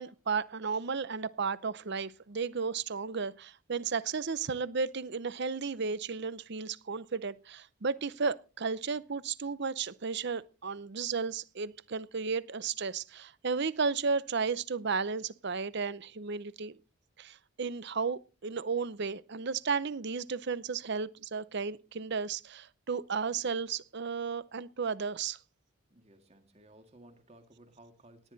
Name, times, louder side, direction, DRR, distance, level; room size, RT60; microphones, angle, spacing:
voice 1, 0.0-16.8 17.2-25.4, right 5 dB, 50° right, 18 dB, 0.6 m, -34 dB
voice 2, 25.9-28.3, right 1 dB, 30° right, 7 dB, 2.1 m, -57 dB
18.0 x 10.5 x 4.0 m, 0.33 s
head